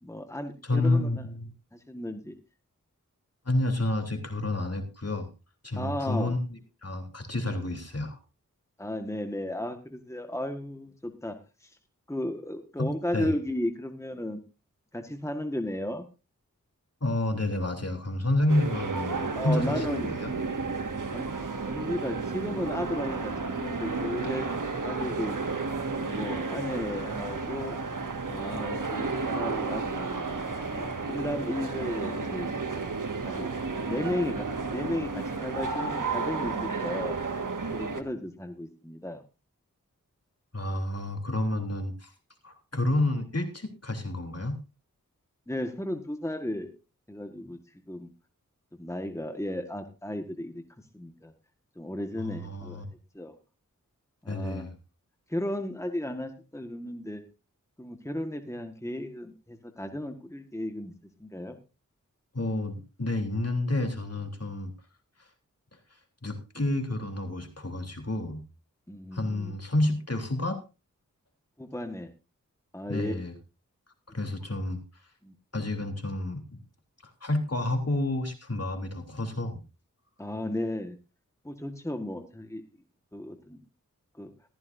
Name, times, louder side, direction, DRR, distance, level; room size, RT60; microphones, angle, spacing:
voice 1, 0.0-1.3 1.7-2.3 5.8-6.4 8.8-11.8 12.1-14.4 14.9-16.0 19.3-20.1 21.1-21.3 21.7-24.5 24.8-25.4 26.0-27.8 28.3-30.2 30.7-32.9 33.2-33.5 33.8-37.2 37.7-39.2 45.5-46.7 47.1-48.1 48.7-51.3 51.7-52.9 53.1-53.3 54.2-54.7 55.3-57.2 57.8-60.9 61.2-61.6 68.9-69.5 71.6-72.1 72.7-73.1 75.2-75.3 80.2-81.0 81.4-82.6 83.1-83.6 84.2-84.3, left 1 dB, 10° left, 5 dB, 1.6 m, -34 dB
voice 2, 0.6-1.5 3.4-5.3 5.6-8.2 12.8-13.3 17.0-20.3 40.5-42.1 42.4-44.6 52.2-52.8 54.3-54.7 62.3-64.7 66.2-68.4 69.1-70.6 72.9-73.3 74.1-74.8 75.5-76.6 77.0-79.6, left 1 dB, 50° left, 4 dB, 3.4 m, -29 dB
sound 1, 18.5-38.0, right 4 dB, 70° right, 1.7 m, -32 dB
15.0 x 14.0 x 2.7 m, 0.31 s
cardioid pair, 40°, 33 cm